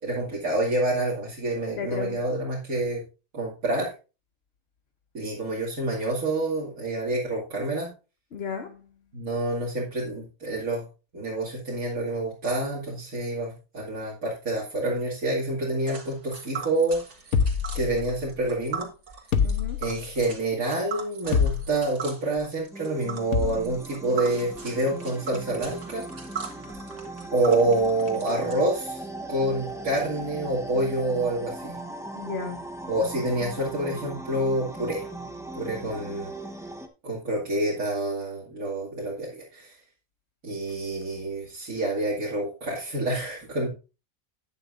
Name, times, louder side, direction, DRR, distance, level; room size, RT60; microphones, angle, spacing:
voice 1, 0.0-3.0 3.3-3.9 5.1-7.9 9.1-10.8 11.1-17.0 17.7-18.9 19.8-26.1 27.3-29.0 29.3-31.7 32.9-35.1 35.5-36.3 37.0-39.8 40.4-43.7, right 2 dB, 90° right, 2.9 m, -27 dB
voice 2, 1.8-2.2 8.3-8.8 19.4-19.8 32.1-32.6, left 5 dB, 50° left, 1.1 m, -34 dB
Tick, 15.9-28.5, right 5 dB, 55° right, 2.2 m, -40 dB
sound 1, 17.3-18.4 19.3-20.2 21.3-22.0 23.3-23.8, left 6 dB, 85° left, 1.5 m, -26 dB
sound 2, 22.7-36.9, right 2 dB, 5° right, 0.8 m, -38 dB
11.5 x 9.6 x 2.6 m
omnidirectional pair, 1.5 m